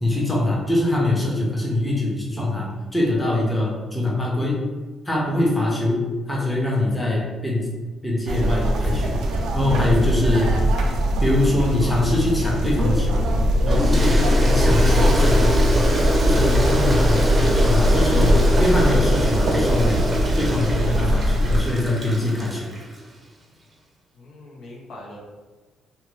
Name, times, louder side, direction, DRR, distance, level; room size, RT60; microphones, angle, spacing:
voice 1, 0.0-4.6 5.0-7.7 8.0-9.2 9.5-10.5 11.2-13.2 13.6-15.7 16.2-20.0 20.4-22.7, left 1 dB, 10° left, -4 dB, 0.7 m, -23 dB
sound 1, 8.3-21.6, equal, 80° right, 0.4 m, -20 dB
Toilet flush, 13.7-23.0, right 1 dB, 35° right, 0.6 m, -25 dB
voice 2, 24.1-25.2, left 1 dB, 65° left, -3 dB, 0.7 m, -41 dB
2.7 x 2.2 x 3.1 m, 1.3 s
cardioid pair, 90°, 0 cm